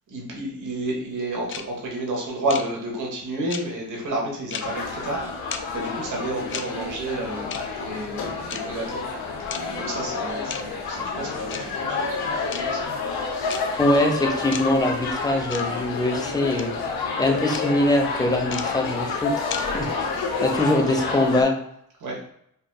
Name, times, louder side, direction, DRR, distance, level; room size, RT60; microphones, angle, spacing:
voice 1, 0.1-5.3 5.7-9.0 9.4-12.8 22.0-22.2, right 1 dB, 55° right, -1 dB, 1.3 m, -31 dB
sound 1, 1.5-1.6 2.5-2.6 3.5-3.6 4.5-4.6 5.5-5.6 6.5-6.6 7.5-7.6 8.5-8.6 9.5-9.6 10.5-10.6 11.5-11.6 12.5-12.6 13.5-13.6 14.5-14.6 15.5-15.6 16.5-16.6 17.5-17.6 18.5-18.6 19.5-19.6, left 7 dB, 35° left, 0.4 m, -32 dB
sound 2, 4.6-21.4, left 4 dB, 90° left, 0.9 m, -29 dB
voice 2, 13.8-16.7 17.2-19.3 19.7-20.1 20.4-21.5, left 1 dB, 10° left, 1 dB, 0.8 m, -22 dB
5.5 x 2.5 x 2.3 m, 0.73 s
cardioid pair, 105°, 35 cm